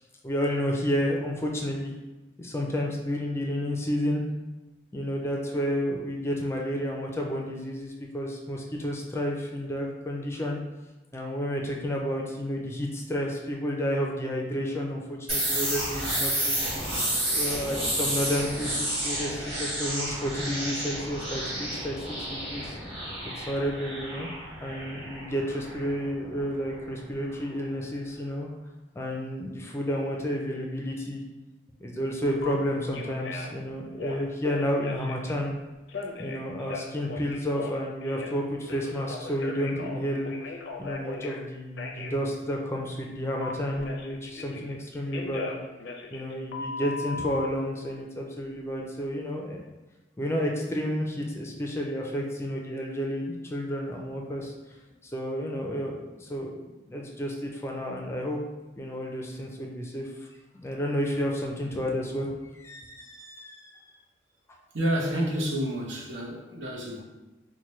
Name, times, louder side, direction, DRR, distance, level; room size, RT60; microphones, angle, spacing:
voice 1, 0.2-1.9 2.4-4.2 4.9-10.6 11.1-16.6 17.3-22.8 23.4-24.3 24.6-28.5 28.9-31.2 31.8-35.5 36.2-40.3 40.8-45.5 46.1-49.6 50.2-54.8 55.0-58.4 58.8-60.3 60.5-63.7, equal, 15° left, 0 dB, 0.4 m, -31 dB
sound 1, 15.3-26.9, right 1 dB, 30° right, 1.5 m, -31 dB
Telephone, 32.4-32.5 32.9-33.6 33.9-35.3 35.9-38.4 38.7-41.4 41.8-42.1 43.4-44.8 45.1-47.5, left 4 dB, 85° left, 0.5 m, -38 dB
voice 2, 64.7-67.0, equal, 85° right, -1 dB, 0.7 m, -29 dB
4.4 x 2.1 x 3.1 m, 1.1 s
head